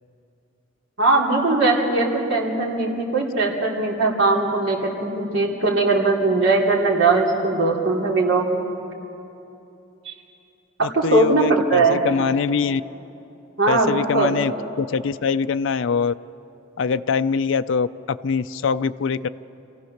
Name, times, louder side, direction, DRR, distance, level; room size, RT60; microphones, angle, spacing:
voice 1, 1.0-8.5 10.0-10.1 10.8-12.0 13.6-14.4, right 3 dB, 75° right, -3 dB, 3.1 m, -20 dB
voice 2, 10.8-12.8 13.7-16.1 16.8-19.3, left 5 dB, 70° left, 12 dB, 0.4 m, -23 dB
27.5 x 15.0 x 6.5 m, 2.9 s
head